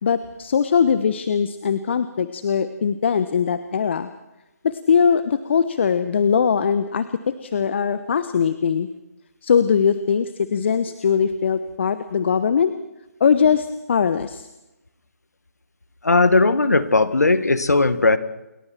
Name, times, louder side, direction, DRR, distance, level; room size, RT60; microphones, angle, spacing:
voice 1, 0.0-4.1 4.6-8.9 9.4-12.7 13.2-14.5, left 6 dB, 45° left, 12 dB, 1.1 m, -21 dB
voice 2, 16.0-18.2, left 3 dB, 75° left, 12 dB, 1.9 m, -17 dB
28.5 x 23.0 x 4.6 m, 0.98 s
figure-of-eight pair, 145°, 9 cm